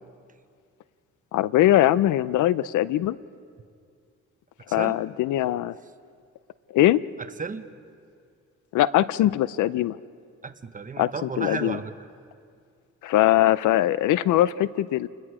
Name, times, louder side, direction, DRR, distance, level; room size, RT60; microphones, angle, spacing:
voice 1, 1.3-3.2 4.7-5.8 6.7-7.0 8.7-10.0 11.0-11.8 13.0-15.1, left 14 dB, 80° left, 18 dB, 0.6 m, -21 dB
voice 2, 4.7-5.0 7.2-7.7 10.4-11.9, right 4 dB, 25° right, 9 dB, 1.2 m, -33 dB
29.5 x 20.5 x 4.9 m, 2.2 s
cardioid pair, 90°, 30 cm